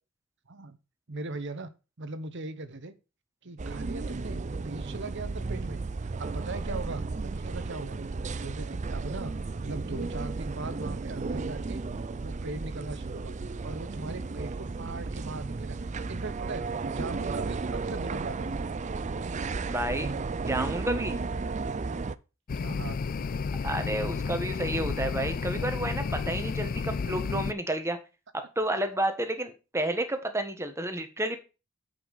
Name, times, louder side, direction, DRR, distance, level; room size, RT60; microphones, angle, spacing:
voice 1, 1.1-1.7 2.0-3.0 3.4-8.0 8.4-9.3 9.6-11.8 12.2-13.4 13.6-18.8 22.6-23.0, right 3 dB, 60° right, 12 dB, 1.0 m, -39 dB
sound 1, 3.6-22.1, right 3 dB, 35° right, 0.5 m, -34 dB
voice 2, 19.7-20.1 20.4-21.2 23.6-28.0 28.3-31.4, right 1 dB, 15° right, 7 dB, 1.5 m, -31 dB
sound 2, 22.5-27.5, left 4 dB, 45° left, 0.4 m, -31 dB
8.3 x 5.6 x 6.6 m, 0.31 s
head